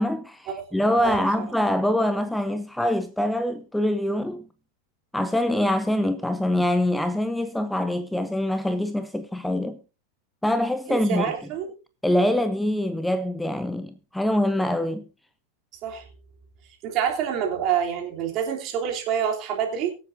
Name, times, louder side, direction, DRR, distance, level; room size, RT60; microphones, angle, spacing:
voice 1, 0.0-4.4 5.1-9.8 10.4-11.3 12.0-15.0, left 1 dB, 5° left, 0.6 m, -24 dB
voice 2, 0.7-1.2 10.9-11.7 15.8-16.0 16.8-20.0, right 8 dB, 35° right, 3.3 m, -27 dB
23.5 x 7.9 x 2.7 m
figure-of-eight pair, 90°, 0 cm